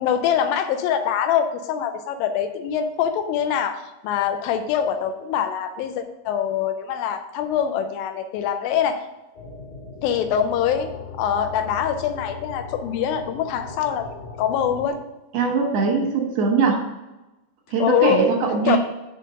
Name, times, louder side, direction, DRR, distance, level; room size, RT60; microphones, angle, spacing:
voice 1, 0.0-9.0 10.0-10.9 11.2-14.1 14.4-15.0 17.8-18.2 18.7-18.8, left 8 dB, 90° left, 7 dB, 2.0 m, -24 dB
sound 1, 9.3-14.9, left 5 dB, 65° left, 2.8 m, -38 dB
voice 2, 15.3-16.8 17.7-18.8, right 4 dB, 55° right, -1 dB, 1.8 m, -21 dB
6.4 x 4.5 x 6.3 m, 1.0 s
omnidirectional pair, 4.8 m